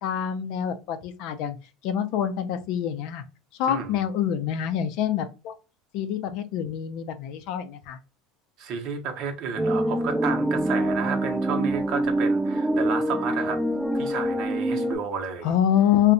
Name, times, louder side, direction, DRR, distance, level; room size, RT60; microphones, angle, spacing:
voice 1, 0.0-1.6 1.8-3.2 3.6-5.5 5.9-8.0 15.4-16.1, left 10 dB, 60° left, 0.4 m, -26 dB
voice 2, 3.7-4.0 8.6-13.6 13.9-15.5, right 6 dB, 55° right, 0.6 m, -32 dB
sound 1, 9.6-15.0, right 1 dB, 5° right, 0.4 m, -25 dB
2.6 x 2.1 x 2.5 m
cardioid pair, 150°, 0 cm